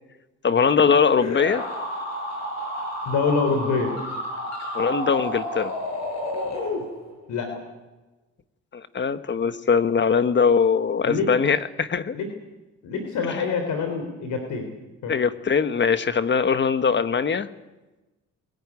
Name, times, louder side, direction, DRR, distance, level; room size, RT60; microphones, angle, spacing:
voice 1, 0.4-1.6 4.7-5.7 8.7-12.2 15.1-17.5, left 6 dB, 40° left, 12 dB, 1.3 m, -21 dB
sound 1, 1.2-7.2, left 1 dB, 60° left, 7.1 m, -30 dB
voice 2, 3.0-4.0 7.3-7.5 11.0-11.3 12.1-12.3 12.8-14.7 15.0-15.1, left 4 dB, 80° left, 5 dB, 3.5 m, -25 dB
21.5 x 14.5 x 9.8 m, 1.1 s
cardioid pair, 90°, 30 cm